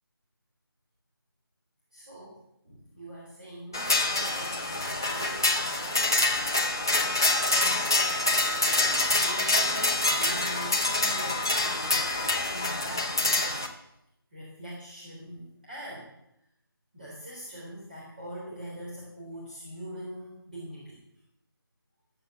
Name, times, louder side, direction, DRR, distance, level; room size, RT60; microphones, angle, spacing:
voice 1, 1.9-6.4 7.6-8.0 8.8-12.1 12.5-13.6 14.3-16.1 16.9-21.0, equal, 25° right, -6 dB, 3.4 m, -43 dB
sound 1, 3.7-13.7, left 2 dB, 10° left, 0.7 m, -26 dB
13.0 x 8.0 x 8.2 m, 0.82 s
figure-of-eight pair, 180°, 13 cm